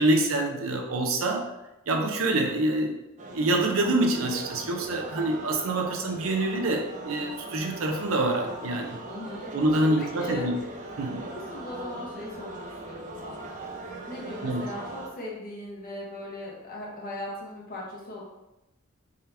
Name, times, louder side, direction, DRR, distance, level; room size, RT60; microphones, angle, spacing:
voice 1, 0.0-1.5 1.9-3.0 3.3-9.0 9.5-10.6 11.0-11.2 14.4-14.7, right 2 dB, 90° right, 2 dB, 0.6 m, -26 dB
sound 1, 3.2-15.1, right 2 dB, 40° right, 0.5 m, -40 dB
voice 2, 9.0-9.5 10.0-10.5 11.1-13.5 14.1-18.2, left 2 dB, 45° left, -4 dB, 1.1 m, -39 dB
3.6 x 2.9 x 3.4 m, 0.95 s
head